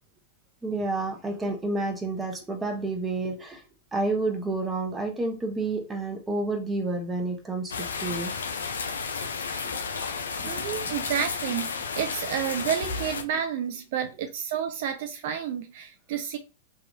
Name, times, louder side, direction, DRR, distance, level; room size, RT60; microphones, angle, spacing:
voice 1, 0.6-3.6 3.9-8.3 9.2-9.3 9.6-9.7, right 2 dB, 15° right, 0.8 m, -29 dB
sound 1, 7.7-13.2, left 5 dB, 75° left, 0.4 m, -32 dB
voice 2, 10.4-16.4, right 9 dB, 55° right, 0.3 m, -30 dB
2.9 x 2.4 x 2.5 m
hypercardioid pair, 100°, 0 cm